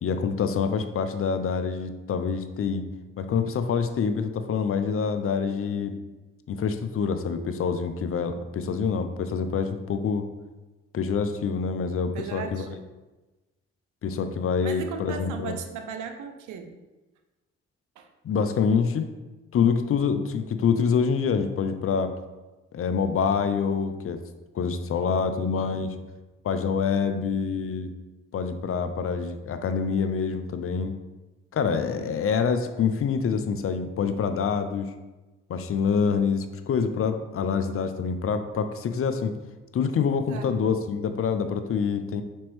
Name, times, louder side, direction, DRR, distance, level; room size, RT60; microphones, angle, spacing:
voice 1, 0.0-2.9 3.2-6.0 6.5-10.3 10.9-12.7 14.0-15.5 18.2-19.1 19.5-22.1 22.7-24.2 24.5-26.0 26.4-27.9 28.3-30.9 31.5-34.9 35.5-39.3 39.7-42.2, left 6 dB, 50° left, 9 dB, 0.5 m, -26 dB
voice 2, 12.1-12.8 14.6-16.7 18.0-18.1 31.9-32.4 40.3-40.5, right 6 dB, 80° right, 6 dB, 0.5 m, -37 dB
5.2 x 2.9 x 3.1 m, 1.1 s
hypercardioid pair, 45°, 30 cm